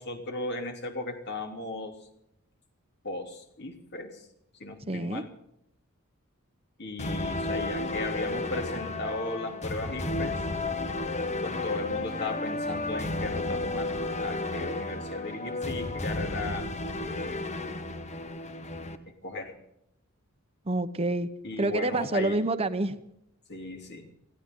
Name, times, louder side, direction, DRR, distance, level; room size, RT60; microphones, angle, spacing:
voice 1, 0.0-2.1 3.0-4.3 4.6-5.3 6.8-10.4 11.4-13.9 14.2-17.5 19.1-19.6 21.4-22.4 23.5-24.1, left 2 dB, 55° left, 5 dB, 2.9 m, -36 dB
voice 2, 4.9-5.2 20.7-21.3 21.6-22.9, right 2 dB, 30° right, 9 dB, 0.9 m, -27 dB
sound 1, 7.0-19.0, left 2 dB, 35° left, 1.3 m, -32 dB
24.0 x 16.0 x 3.8 m, 0.80 s
head